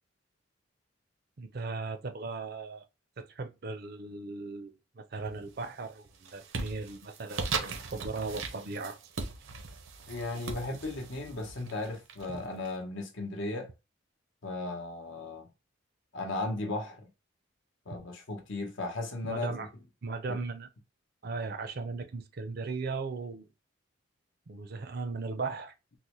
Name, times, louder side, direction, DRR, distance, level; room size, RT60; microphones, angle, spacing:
voice 1, 1.4-2.9 3.2-9.0 12.3-12.4 17.9-18.0 19.2-19.7 20.0-20.7 21.2-23.5 24.5-25.7, right 3 dB, 50° right, 0.5 m, -37 dB
sound 1, 5.2-5.7 6.0-12.7, right 4 dB, 80° right, 0.7 m, -39 dB
voice 2, 10.1-13.7 14.4-15.5 16.1-17.1 17.9-19.6 20.3-20.4, left 2 dB, 65° left, 0.8 m, -36 dB
3.9 x 2.1 x 3.0 m
head